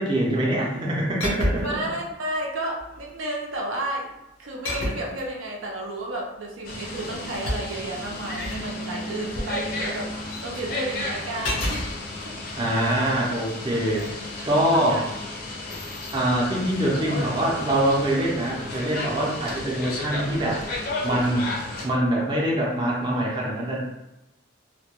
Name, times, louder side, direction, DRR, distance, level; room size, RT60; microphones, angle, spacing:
voice 1, 0.0-1.6 12.6-14.1 14.4-15.0 16.1-20.7 21.0-23.8, right 1 dB, 25° right, -4 dB, 0.5 m, -24 dB
sound 1, 1.2-1.8 2.8-3.2 4.6-5.2 6.9-8.7 11.4-11.9 13.9-14.1, left 1 dB, 90° left, 0.7 m, -29 dB
voice 2, 1.6-4.1 4.4-12.3 14.4-15.1, right 1 dB, 85° right, -1 dB, 0.5 m, -32 dB
sound 2, 6.6-21.9, left 2 dB, 50° left, 0.5 m, -34 dB
2.2 x 2.1 x 2.8 m, 0.91 s
head